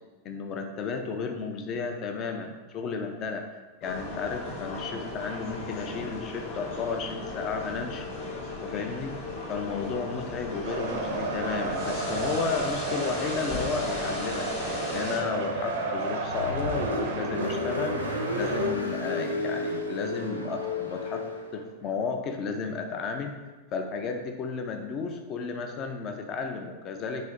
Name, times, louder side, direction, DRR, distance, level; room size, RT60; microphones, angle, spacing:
voice 1, 0.2-3.4 3.8-8.1 8.6-9.2 9.5-18.0 18.3-21.2 21.5-23.4 23.7-27.3, left 5 dB, 35° left, 4 dB, 0.5 m, -33 dB
sound 1, 3.8-15.2, left 2 dB, 50° left, 1.0 m, -36 dB
sound 2, 10.6-18.7, right 3 dB, 60° right, 0.5 m, -32 dB
Car, 16.2-21.6, left 2 dB, 85° left, 0.5 m, -32 dB
4.2 x 2.7 x 3.8 m, 1.3 s
figure-of-eight pair, 90°, 0 cm